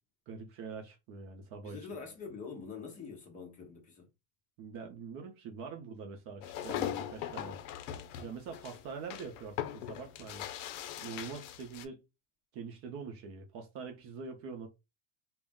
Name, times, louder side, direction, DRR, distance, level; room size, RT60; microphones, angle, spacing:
voice 1, 0.3-1.9 4.6-7.6 8.2-10.5 11.0-12.0 12.5-14.7, right 5 dB, 35° right, 0.5 m, -44 dB
voice 2, 1.6-4.1, left 5 dB, 20° left, 0.7 m, -45 dB
sound 1, 6.4-11.9, left 11 dB, 75° left, 0.5 m, -40 dB
2.4 x 2.1 x 3.4 m
supercardioid pair, 160°, 37 cm